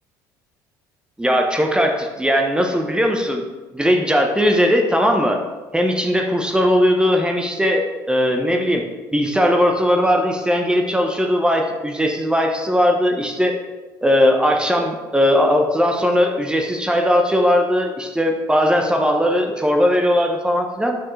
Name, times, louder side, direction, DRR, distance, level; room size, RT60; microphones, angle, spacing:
voice 1, 1.2-3.4 3.7-5.4 5.7-8.8 9.1-13.6 14.0-21.0, equal, 10° right, 3 dB, 0.9 m, -18 dB
6.5 x 5.6 x 3.2 m, 1.2 s
hypercardioid pair, 65°, 11 cm